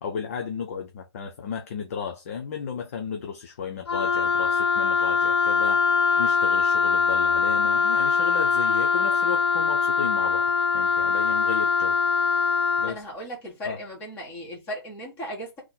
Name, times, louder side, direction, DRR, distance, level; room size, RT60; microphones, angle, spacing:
voice 1, 0.0-12.0 12.3-12.4 12.8-13.0 13.6-13.8, left 7 dB, 35° left, 0.6 m, -34 dB
Wind instrument woodwind instrument, 3.9-12.9, left 5 dB, 70° left, 0.7 m, -22 dB
voice 2, 12.9-15.6, equal, 15° left, 1.9 m, -36 dB
3.8 x 3.1 x 4.0 m
figure-of-eight pair, 150°, 14 cm